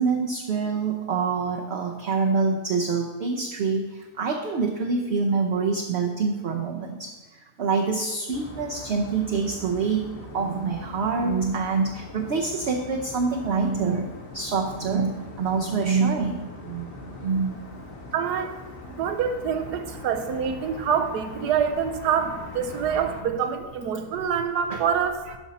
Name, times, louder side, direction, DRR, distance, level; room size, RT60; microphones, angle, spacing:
voice 1, 0.0-16.9 17.2-17.7 24.7-24.8, right 4 dB, 55° right, 1 dB, 0.8 m, -26 dB
sound 1, 8.3-23.2, left 2 dB, 40° left, 1.2 m, -41 dB
voice 2, 18.1-18.5 18.9-25.4, right 7 dB, 90° right, 8 dB, 1.3 m, -26 dB
12.0 x 5.4 x 4.1 m, 1.2 s
omnidirectional pair, 1.7 m